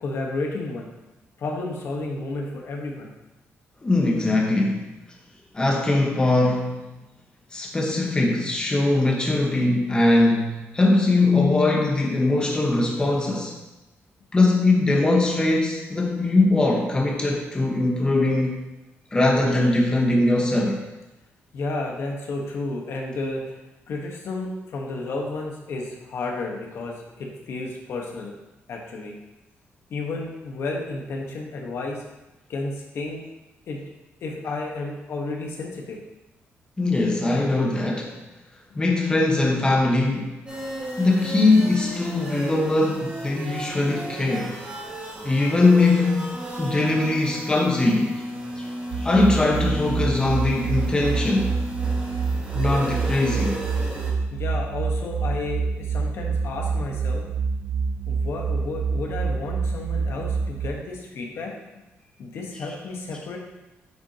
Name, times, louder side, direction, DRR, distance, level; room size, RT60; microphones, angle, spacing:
voice 1, 0.0-0.9 1.4-3.1 21.5-23.6 23.9-28.3 28.7-29.2 29.9-32.0 32.5-33.2 33.7-33.8 34.2-36.0 54.3-57.2 58.1-61.5 62.2-63.4, left 3 dB, 60° left, 0 dB, 1.3 m, -32 dB
voice 2, 3.8-4.9 5.5-7.0 7.5-13.6 14.3-18.6 19.1-20.8 36.8-38.1 38.7-40.3 41.0-44.5 45.2-46.3 46.6-48.2 48.6-48.7 49.0-51.5 52.5-53.6 62.5-62.6, left 2 dB, 20° left, -1 dB, 1.2 m, -21 dB
sound 1, 40.5-54.1, right 1 dB, 25° right, 2.4 m, -35 dB
sound 2, 48.9-60.7, right 5 dB, 75° right, 0.8 m, -27 dB
9.2 x 6.1 x 2.9 m, 1.0 s
cardioid pair, 135°, 5 cm